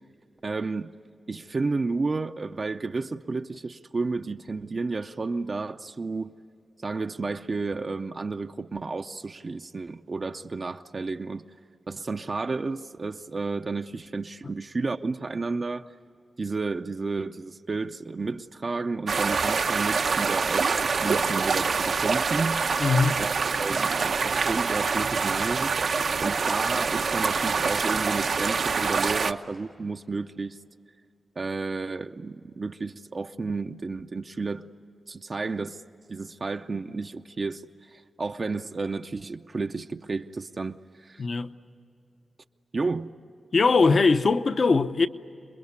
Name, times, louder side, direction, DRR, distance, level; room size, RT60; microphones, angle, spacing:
voice 1, 0.4-0.9 1.3-6.3 6.8-11.4 11.9-15.9 16.4-22.7 23.2-23.3 23.6-25.7 26.2-30.6 31.4-34.7 35.1-35.8 36.1-41.2 42.7-43.2, right 3 dB, 40° right, 0.6 m, -32 dB
sound 1, 19.1-29.3, right 5 dB, 70° right, 0.8 m, -25 dB
voice 2, 22.8-23.2 41.2-41.5 43.5-45.1, left 4 dB, 50° left, 0.8 m, -21 dB
28.0 x 22.0 x 9.5 m
wide cardioid pair, 125°, 0 cm